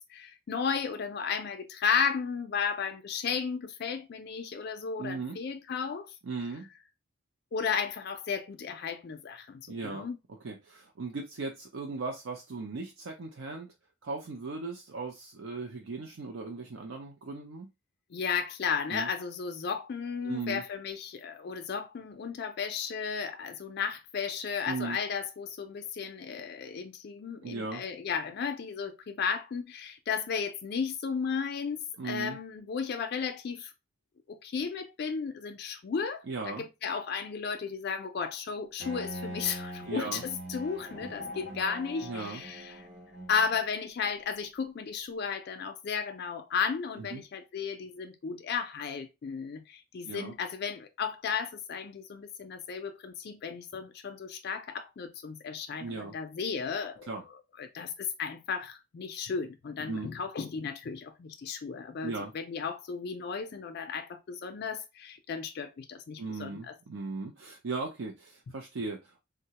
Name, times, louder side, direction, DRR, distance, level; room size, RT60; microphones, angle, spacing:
voice 1, 0.1-6.2 7.5-10.2 18.1-33.7 34.3-42.8 43.3-57.1 57.6-66.7, left 6 dB, 50° left, 0.3 m, -34 dB
voice 2, 5.0-5.4 6.2-6.7 9.7-13.7 14.0-17.7 18.9-19.1 20.2-20.6 24.7-25.0 27.4-27.8 32.0-32.4 36.3-36.6 39.9-40.2 42.0-42.4 47.0-47.2 50.1-50.3 55.8-56.1 57.1-57.2 59.9-60.1 62.0-62.3 66.2-69.2, right 3 dB, 65° right, 0.5 m, -37 dB
Bowed string instrument, 38.8-43.6, equal, 50° right, 0.9 m, -42 dB
3.7 x 2.2 x 2.8 m
head